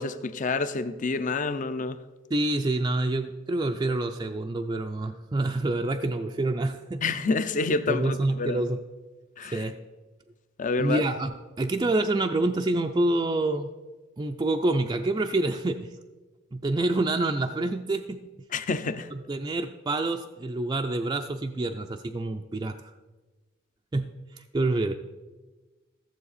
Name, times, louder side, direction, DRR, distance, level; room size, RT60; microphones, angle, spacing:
voice 1, 0.0-2.0 7.0-8.6 9.4-9.7 10.6-11.0 18.5-19.1, left 3 dB, 40° left, 12 dB, 0.5 m, -28 dB
voice 2, 2.3-7.2 7.9-8.8 9.4-9.8 10.8-11.3 11.6-13.7 14.2-15.9 16.5-18.2 19.1-22.9 23.9-25.0, right 2 dB, 20° right, 4 dB, 0.4 m, -27 dB
15.0 x 7.4 x 4.1 m, 1.2 s
head